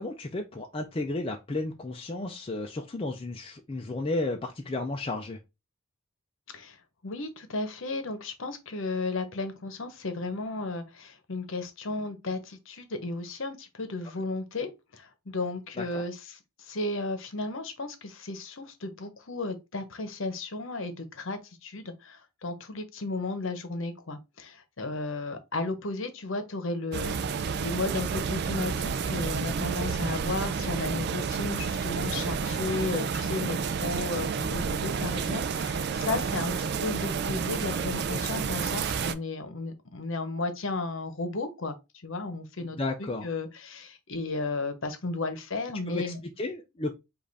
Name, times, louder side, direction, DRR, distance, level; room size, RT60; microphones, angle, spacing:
voice 1, 0.0-5.4 15.8-16.0 36.1-36.2 42.8-43.3 45.9-46.9, left 2 dB, 25° left, 0.4 m, -33 dB
voice 2, 7.0-41.7 42.0-46.2, left 3 dB, 60° left, 0.9 m, -34 dB
sound 1, 26.9-39.1, right 5 dB, 45° right, 0.4 m, -30 dB
5.2 x 2.5 x 4.0 m
head